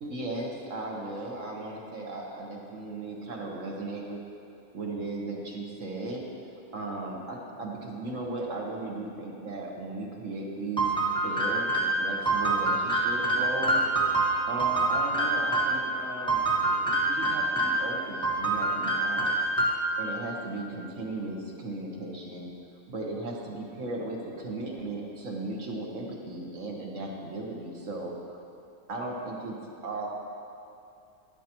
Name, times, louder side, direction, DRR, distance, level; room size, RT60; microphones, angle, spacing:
voice 1, 0.0-4.2 4.7-6.2 6.7-10.9 11.2-13.8 14.5-19.4 20.0-22.5 22.9-28.4 28.9-29.6 29.8-30.1, right 2 dB, 65° right, -1 dB, 1.5 m, -36 dB
sound 1, 10.8-15.8 16.3-17.9 18.2-20.0, right 2 dB, 5° left, 1.2 m, -26 dB
12.0 x 10.0 x 3.0 m, 2.6 s
omnidirectional pair, 1.5 m